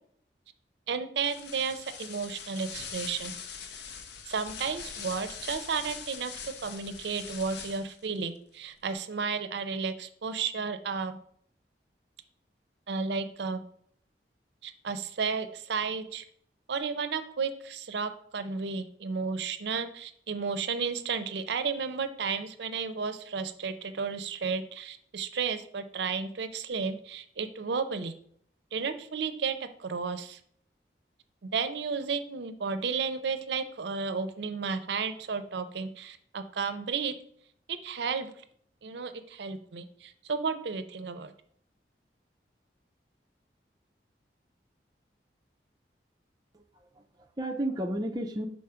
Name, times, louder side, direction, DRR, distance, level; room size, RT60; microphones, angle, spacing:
voice 1, 0.9-3.4 4.3-11.2 12.9-13.6 14.6-16.2 16.7-28.1 28.7-30.4 31.5-37.1 37.7-38.3 38.8-41.3, right 5 dB, 75° right, 10 dB, 0.5 m, -33 dB
sound 1, 1.2-8.1, left 6 dB, 70° left, 0.6 m, -42 dB
voice 2, 46.5-48.5, right 1 dB, 20° right, 3 dB, 0.5 m, -33 dB
5.7 x 3.9 x 4.9 m, 0.64 s
head